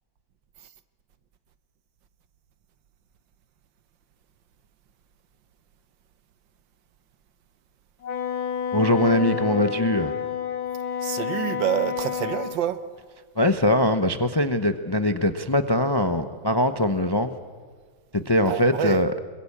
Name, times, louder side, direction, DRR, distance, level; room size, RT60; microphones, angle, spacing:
Wind instrument woodwind instrument, 8.0-12.6, left 7 dB, 80° left, 2.8 m, -29 dB
voice 1, 8.7-10.1 13.4-17.3 18.1-19.1, left 1 dB, 40° left, 0.3 m, -22 dB
voice 2, 11.0-12.8 18.5-19.0, right 10 dB, 70° right, 1.7 m, -27 dB
26.5 x 22.5 x 8.7 m
omnidirectional pair, 2.1 m